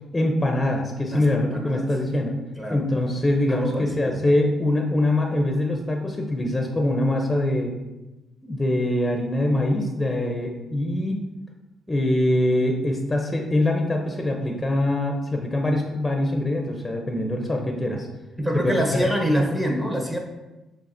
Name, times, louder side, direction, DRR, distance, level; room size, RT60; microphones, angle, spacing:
voice 1, 0.1-2.3 2.7-7.7 8.4-11.2 11.9-18.1 18.5-19.0, left 1 dB, 20° left, 2 dB, 0.6 m, -23 dB
voice 2, 1.1-1.9 2.6-2.8 3.5-4.1 18.4-20.2, equal, 10° right, 0 dB, 0.8 m, -25 dB
6.7 x 2.9 x 2.6 m, 1.1 s
cardioid pair, 90°, 0 cm